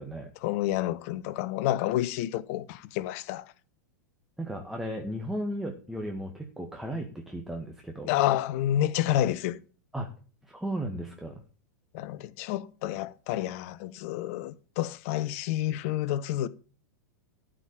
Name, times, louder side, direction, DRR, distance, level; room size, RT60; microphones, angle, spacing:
voice 1, 0.4-3.5 8.1-9.6 11.9-16.5, left 13 dB, 50° left, 0.8 m, -29 dB
voice 2, 4.4-8.2 9.9-10.1 10.4-11.4, right 1 dB, 5° right, 1.7 m, -35 dB
13.0 x 5.1 x 9.0 m
figure-of-eight pair, 95°, 10 cm